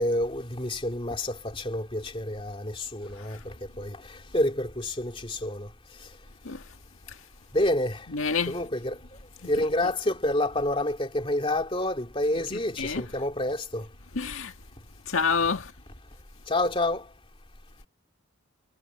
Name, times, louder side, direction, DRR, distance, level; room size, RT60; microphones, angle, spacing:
voice 1, 0.0-4.0 4.3-5.7 7.5-8.1 8.5-9.0 9.5-13.9 16.5-17.0, left 1 dB, 25° left, 2.7 m, -28 dB
voice 2, 8.1-8.6 9.4-9.7 12.5-13.1 14.1-14.5 15.1-15.7, left 5 dB, 75° left, 1.8 m, -29 dB
head